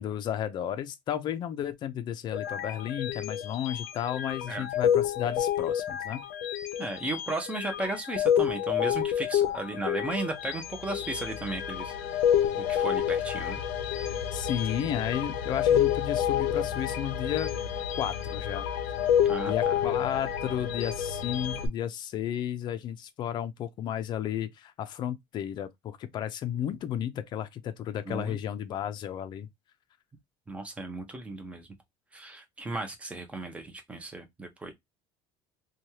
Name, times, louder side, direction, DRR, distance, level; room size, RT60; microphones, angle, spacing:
voice 1, 0.0-6.2 14.3-17.5 18.0-18.6 19.4-29.5, left 10 dB, 40° left, 0.5 m, -33 dB
sound 1, 2.3-21.7, left 9 dB, 90° left, 0.6 m, -29 dB
voice 2, 6.8-11.9 12.5-13.6 19.2-19.5 28.1-28.4 30.5-31.7 32.1-34.7, right 2 dB, 10° right, 0.7 m, -35 dB
3.1 x 2.3 x 2.7 m
cardioid pair, 150°, 12 cm